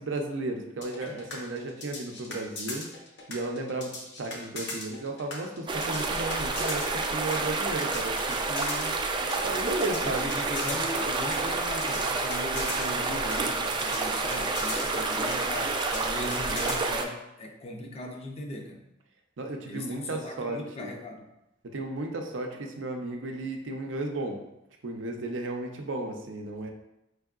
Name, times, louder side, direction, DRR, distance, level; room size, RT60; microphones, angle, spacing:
voice 1, 0.0-2.9 3.3-8.9 9.4-10.3 19.4-20.9 21.6-24.4 24.8-26.7, right 2 dB, 80° right, 3 dB, 0.6 m, -34 dB
sound 1, 0.8-16.8, left 3 dB, 65° left, 0.8 m, -39 dB
sound 2, 5.7-17.0, right 3 dB, 25° right, 0.3 m, -29 dB
voice 2, 10.0-18.8 19.7-21.3, left 1 dB, 35° left, 3 dB, 0.5 m, -38 dB
4.5 x 3.3 x 2.4 m, 0.87 s
head